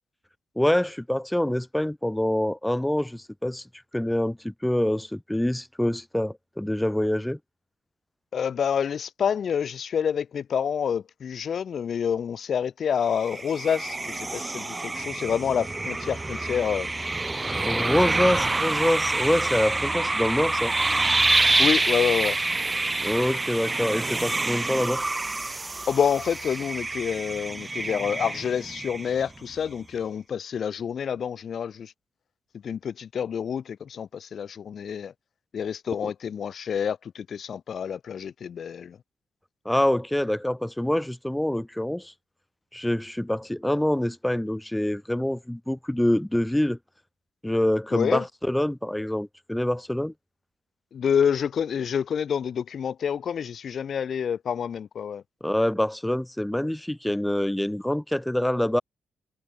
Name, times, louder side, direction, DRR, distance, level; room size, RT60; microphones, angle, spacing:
voice 1, 0.5-3.6 3.9-7.4 17.6-20.7 23.0-25.0 39.6-42.1 42.7-46.8 47.4-50.1 55.4-58.8, left 1 dB, 5° left, 1.5 m, -25 dB
voice 2, 8.3-16.9 21.6-22.4 25.9-31.9 32.6-35.1 35.5-39.0 47.9-48.2 50.9-55.2, left 7 dB, 55° left, 1.0 m, -28 dB
sound 1, 13.1-29.4, right 2 dB, 20° right, 1.7 m, -27 dB
cardioid pair, 90°, 0 cm